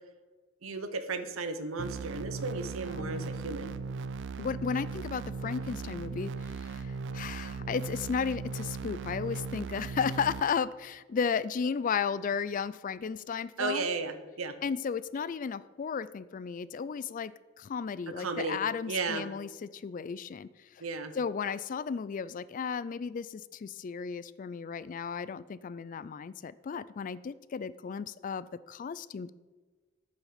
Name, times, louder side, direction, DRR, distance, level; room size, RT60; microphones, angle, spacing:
voice 1, 0.6-3.8 13.6-14.5 18.2-18.6 18.9-19.2 20.8-21.1, right 4 dB, 90° right, 10 dB, 0.9 m, -34 dB
sound 1, 1.8-10.4, right 4 dB, 60° right, 0.4 m, -38 dB
voice 2, 2.9-3.3 4.4-13.9 14.6-17.3 17.6-20.5 21.1-29.3, left 6 dB, 40° left, 17 dB, 0.3 m, -34 dB
8.5 x 7.2 x 5.9 m, 1.3 s
head